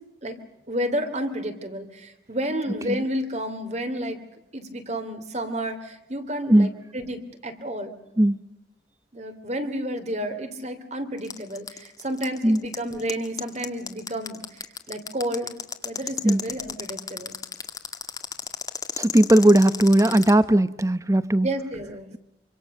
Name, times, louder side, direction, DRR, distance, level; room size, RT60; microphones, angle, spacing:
voice 1, 0.7-4.2 4.5-8.0 9.1-14.4 14.9-15.5 15.8-17.4 21.4-22.1, equal, 40° right, 8 dB, 3.0 m, -31 dB
sound 1, 11.2-20.3, left 5 dB, 20° left, 1.8 m, -32 dB
voice 2, 19.0-21.5, right 1 dB, 15° right, 15 dB, 0.8 m, -18 dB
26.5 x 25.5 x 6.6 m, 0.88 s
head